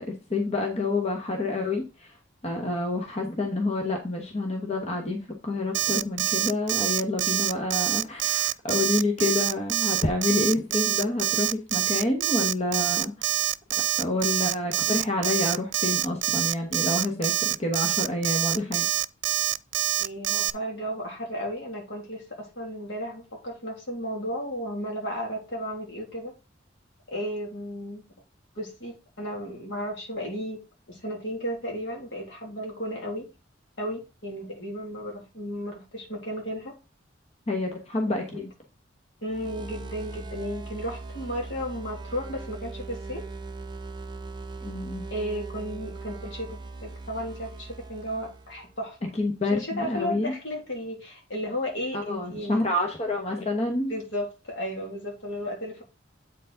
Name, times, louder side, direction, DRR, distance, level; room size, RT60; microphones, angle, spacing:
voice 1, 0.1-2.1 2.4-13.3 14.0-18.9 37.5-38.5 44.6-45.0 49.2-50.3 51.9-54.0, left 2 dB, 35° left, 1.2 m, -28 dB
Alarm, 5.7-20.5, right 13 dB, 65° right, 0.3 m, -26 dB
voice 2, 20.0-26.3 27.1-28.0 28.6-33.3 33.8-36.7 38.3-38.4 39.2-43.3 45.1-49.1 49.4-52.7 53.9-55.8, equal, 75° left, 2.6 m, -34 dB
sound 1, 39.3-48.8, right 3 dB, 25° right, 0.6 m, -40 dB
8.1 x 4.7 x 3.9 m
head